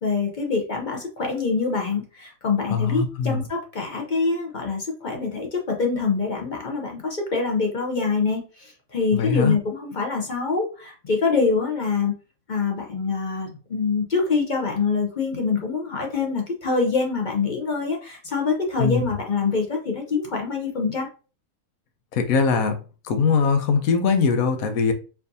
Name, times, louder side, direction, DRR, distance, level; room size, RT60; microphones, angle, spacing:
voice 1, 0.0-12.1 12.5-21.1, left 4 dB, 45° left, 1 dB, 0.6 m, -25 dB
voice 2, 2.7-3.4 9.1-9.5 18.8-19.0 22.1-22.8 23.0-24.9, left 5 dB, 90° left, 7 dB, 1.1 m, -21 dB
4.5 x 2.6 x 2.6 m, 0.35 s
omnidirectional pair, 1.4 m